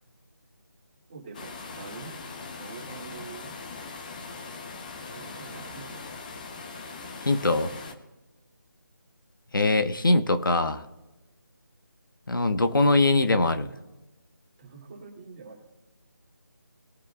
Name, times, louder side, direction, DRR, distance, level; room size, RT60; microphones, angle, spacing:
voice 1, 1.1-2.1 2.6-3.5 5.1-6.0 14.6-15.6, right 5 dB, 25° right, -2 dB, 3.0 m, -45 dB
sound 1, 1.3-7.9, left 4 dB, 25° left, 0.9 m, -40 dB
voice 2, 7.2-7.7 9.5-10.8 12.3-13.7, left 2 dB, 75° left, 8 dB, 1.2 m, -22 dB
20.5 x 9.0 x 2.4 m, 1.1 s
figure-of-eight pair, 165°, 11 cm